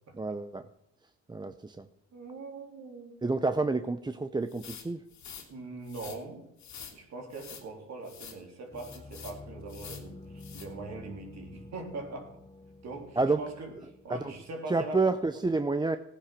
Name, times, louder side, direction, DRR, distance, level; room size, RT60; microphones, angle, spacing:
voice 1, 0.1-0.7 1.3-1.9 3.2-5.0 13.2-13.4 14.1-14.3 14.7-16.0, right 3 dB, 15° right, 10 dB, 0.7 m, -29 dB
voice 2, 2.1-3.2 5.5-6.4 6.9-12.4 12.8-13.7 14.0-15.0, right 3 dB, 60° right, 2 dB, 3.7 m, -42 dB
sound 1, 4.5-5.5 5.8-6.2 6.6-7.0 7.3-7.6 8.0-8.4 8.8-9.4 9.7-10.1 10.4-10.7, left 7 dB, 70° left, 2.8 m, -47 dB
sound 2, 8.7-14.5, left 3 dB, 15° left, 1.0 m, -49 dB
16.0 x 10.0 x 6.0 m, 0.86 s
cardioid pair, 90°, 30 cm